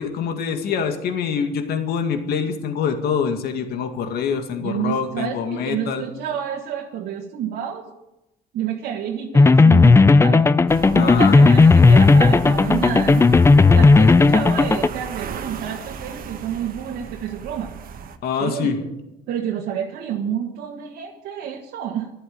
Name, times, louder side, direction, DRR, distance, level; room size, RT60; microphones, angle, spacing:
voice 1, 0.0-6.0 10.9-11.4 18.2-18.8, left 6 dB, 70° left, 5 dB, 2.1 m, -25 dB
voice 2, 4.6-7.9 8.5-10.5 11.0-13.3 13.7-17.7 18.4-18.7 19.3-22.1, right 9 dB, 80° right, -3 dB, 1.9 m, -29 dB
sound 1, 9.3-14.9, left 3 dB, 15° left, 0.5 m, -13 dB
sound 2, 10.7-18.2, right 6 dB, 60° right, 1.5 m, -34 dB
14.0 x 12.5 x 7.8 m, 0.91 s
cardioid pair, 110°, 17 cm